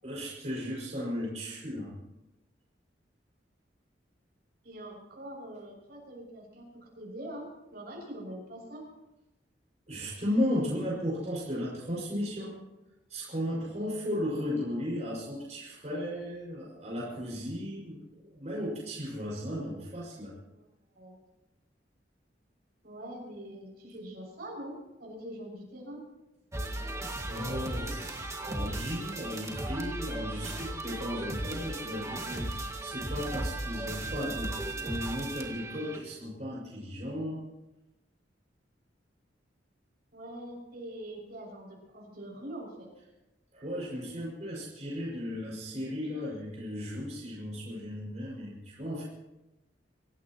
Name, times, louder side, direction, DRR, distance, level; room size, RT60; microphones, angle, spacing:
voice 1, 0.0-1.9 9.9-12.5 13.1-18.0 18.3-20.3 27.3-34.5 34.8-37.4 43.5-49.0, equal, 40° right, -5 dB, 6.0 m, -35 dB
voice 2, 4.6-8.9 20.5-20.7 20.9-21.2 22.8-26.0 40.1-42.9, right 1 dB, 60° right, -1 dB, 6.9 m, -43 dB
sound 1, 26.5-36.0, right 1 dB, 20° right, 2.1 m, -36 dB
26.0 x 16.5 x 3.1 m, 0.97 s
head